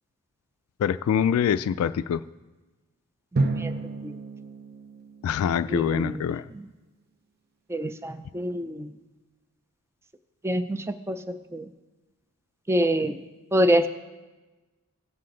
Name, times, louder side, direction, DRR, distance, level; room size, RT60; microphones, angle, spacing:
voice 1, 0.8-2.2 5.2-6.4, left 8 dB, 80° left, 16 dB, 0.3 m, -24 dB
voice 2, 3.3-3.7 4.0-4.1 5.7-6.3 6.5-6.6 7.7-8.9 10.4-11.6 12.7-13.2 13.5-13.9, equal, 10° right, 10 dB, 0.4 m, -26 dB
Drum, 3.4-6.1, right 3 dB, 50° right, 0.6 m, -31 dB
17.5 x 7.6 x 3.8 m, 1.2 s
head